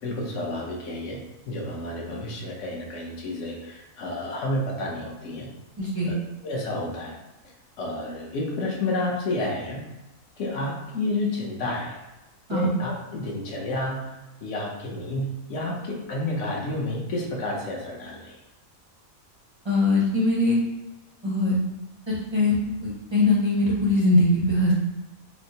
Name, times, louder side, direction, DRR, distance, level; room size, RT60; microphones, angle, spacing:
voice 1, 0.0-5.5 6.1-6.2 6.4-7.2 7.8-9.8 10.4-12.0 12.5-14.1 14.4-18.4, left 2 dB, 65° left, -1 dB, 0.9 m, -30 dB
voice 2, 5.8-6.1 12.5-12.7 19.6-20.6 21.2-21.5 22.3-24.7, left 2 dB, 35° right, -6 dB, 0.4 m, -21 dB
4.2 x 2.0 x 2.7 m, 1.0 s
omnidirectional pair, 1.5 m